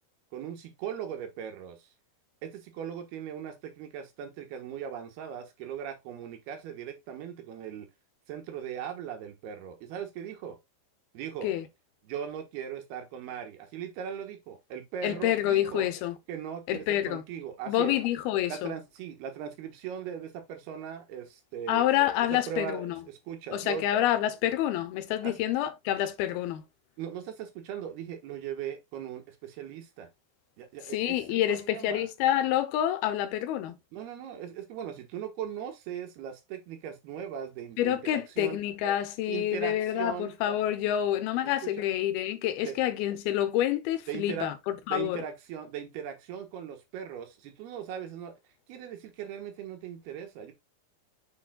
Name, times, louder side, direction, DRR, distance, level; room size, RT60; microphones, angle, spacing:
voice 1, 0.3-1.9 2.4-7.9 8.3-10.6 11.1-11.5 12.0-15.9 16.3-17.9 18.5-21.8 22.2-23.9 25.2-25.3 27.0-30.1 30.6-31.2 31.5-32.1 33.9-38.6 39.3-40.3 41.6-41.7 42.6-42.8 44.1-44.5 44.9-48.3 48.7-50.5, right 9 dB, 85° right, 3.2 m, -39 dB
voice 2, 15.0-16.2 16.7-17.2 17.7-18.7 21.7-23.0 23.5-26.6 30.9-33.8 37.8-45.2, left 12 dB, 80° left, 2.6 m, -28 dB
7.0 x 6.6 x 2.2 m
omnidirectional pair, 4.4 m